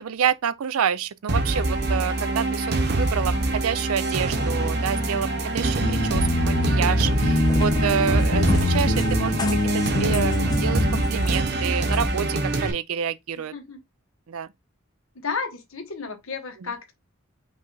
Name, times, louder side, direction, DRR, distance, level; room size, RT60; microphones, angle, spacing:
voice 1, 0.0-9.5 9.7-13.5 14.3-14.5, right 8 dB, 90° right, 0.4 m, -28 dB
sound 1, 1.3-12.7, right 2 dB, 50° right, 0.8 m, -25 dB
voice 2, 3.1-3.5 13.4-13.8 15.1-16.9, left 5 dB, 75° left, 1.1 m, -33 dB
sound 2, 5.8-11.0, left 1 dB, 40° left, 1.0 m, -24 dB
Cat, 7.2-12.2, left 1 dB, 20° left, 0.5 m, -31 dB
5.3 x 2.4 x 3.9 m
head